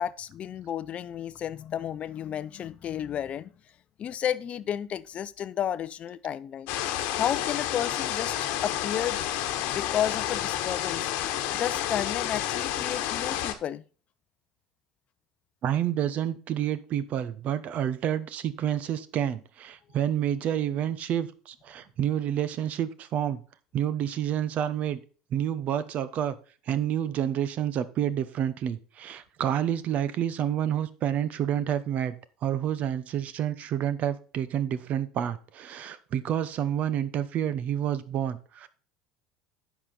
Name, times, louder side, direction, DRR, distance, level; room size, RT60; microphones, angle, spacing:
voice 1, 0.0-3.5 4.0-6.7 7.2-8.4 8.6-9.2 9.7-11.1 11.5-13.8, left 9 dB, 40° left, 0.6 m, -32 dB
sound 1, 6.7-13.5, left 12 dB, 60° left, 1.2 m, -30 dB
voice 2, 15.6-23.4 23.7-25.0 25.3-26.4 26.7-32.1 32.4-38.7, right 10 dB, 45° right, 0.9 m, -29 dB
10.0 x 6.1 x 4.2 m
hypercardioid pair, 70°, 3 cm